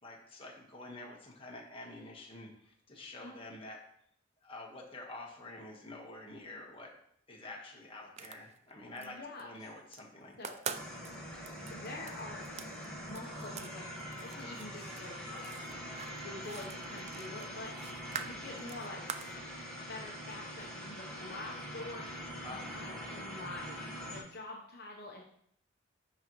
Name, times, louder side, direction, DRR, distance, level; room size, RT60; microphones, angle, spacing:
voice 1, 0.0-3.8 4.4-6.9 7.3-10.6 18.1-18.3 22.4-23.1, left 2 dB, 30° left, -1 dB, 1.4 m, -48 dB
sound 1, 8.0-9.1 9.4-10.0 10.3-13.7 14.0-19.4, right 7 dB, 35° right, 0.4 m, -45 dB
voice 2, 9.0-9.5 10.3-10.6 11.7-12.5 13.0-15.7 16.2-19.1 19.9-25.2, left 2 dB, 55° left, -1 dB, 0.9 m, -47 dB
sound 2, 10.7-24.2, equal, 5° left, 1.5 m, -44 dB
11.0 x 4.0 x 3.0 m, 0.69 s
head